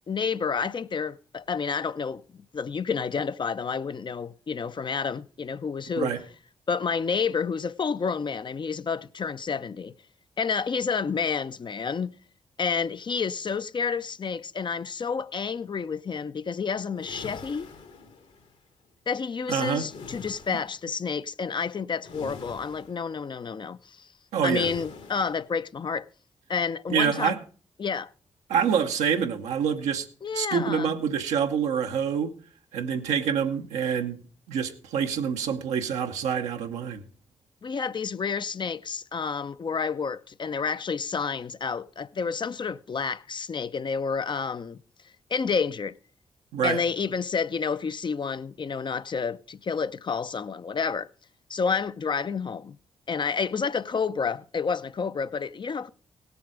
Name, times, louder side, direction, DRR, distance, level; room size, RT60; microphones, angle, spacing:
voice 1, 0.1-2.2 2.5-6.2 6.7-9.9 10.4-12.1 12.6-17.7 19.1-24.1 24.4-26.1 26.5-27.4 27.8-28.1 30.2-30.9 37.6-44.8 45.3-46.0 46.6-51.1 51.5-52.8 53.1-55.9, left 5 dB, 40° left, 0.6 m, -29 dB
sound 1, 16.9-18.6 19.9-20.8 22.0-23.1 24.5-25.5, left 4 dB, 80° left, 2.3 m, -44 dB
voice 2, 19.5-19.9 24.3-24.7 26.9-27.4 28.5-30.1 30.3-32.3 32.7-34.2 34.5-37.0 46.5-46.8, right 7 dB, 85° right, 1.1 m, -26 dB
17.5 x 7.0 x 5.0 m
hypercardioid pair, 45°, 12 cm